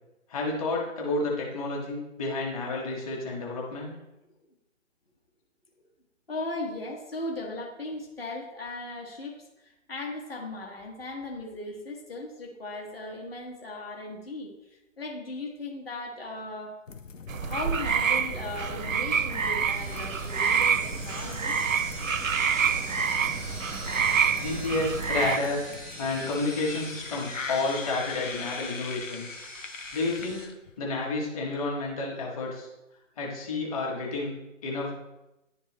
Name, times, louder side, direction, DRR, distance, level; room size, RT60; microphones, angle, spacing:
voice 1, 0.3-3.9 24.3-25.6 26.0-29.3 29.9-30.5 30.8-32.7 33.2-34.3 34.6-34.9, left 2 dB, 30° left, -3 dB, 1.3 m, -30 dB
voice 2, 6.3-16.7 17.4-21.6, left 2 dB, 50° left, 0 dB, 1.3 m, -37 dB
sound 1, 16.9-30.8, left 5 dB, 75° left, 0.8 m, -41 dB
sound 2, 17.3-25.4, right 7 dB, 85° right, 0.6 m, -27 dB
sound 3, 18.9-30.4, equal, ahead, 0.6 m, -44 dB
10.5 x 3.7 x 3.1 m, 0.94 s
figure-of-eight pair, 145°, 39 cm